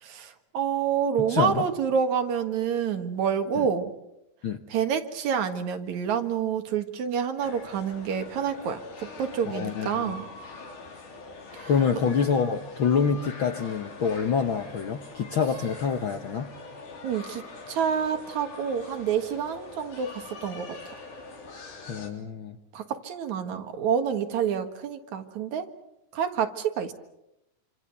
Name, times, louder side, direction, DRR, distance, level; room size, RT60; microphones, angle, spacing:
voice 1, 0.0-3.9 4.7-10.2 11.5-11.7 17.0-20.9 22.7-25.7 26.1-26.9, right 7 dB, 70° right, 7 dB, 2.9 m, -28 dB
voice 2, 1.3-1.7 3.6-3.7 4.4-4.6 9.5-10.1 11.7-16.5 21.9-22.6, left 6 dB, 60° left, 7 dB, 1.4 m, -26 dB
sound 1, 7.4-22.1, left 3 dB, 90° left, 4.7 m, -43 dB
28.0 x 25.5 x 6.8 m, 0.85 s
omnidirectional pair, 3.5 m